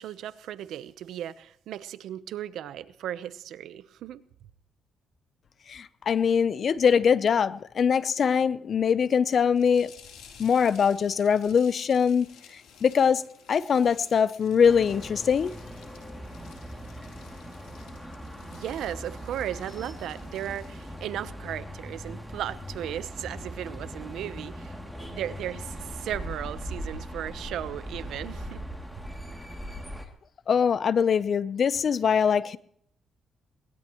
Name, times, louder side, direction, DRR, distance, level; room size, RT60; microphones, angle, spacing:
voice 1, 0.0-4.2 18.5-28.7, right 11 dB, 80° right, 0.9 m, -36 dB
voice 2, 5.7-9.9 10.4-12.3 12.8-13.2 13.5-15.5 30.5-32.6, left 7 dB, 50° left, 0.7 m, -22 dB
sound 1, 9.6-21.0, left 7 dB, 85° left, 3.6 m, -53 dB
sound 2, 14.6-30.0, equal, 5° left, 2.7 m, -40 dB
22.0 x 19.5 x 3.1 m
cardioid pair, 90°, 0 cm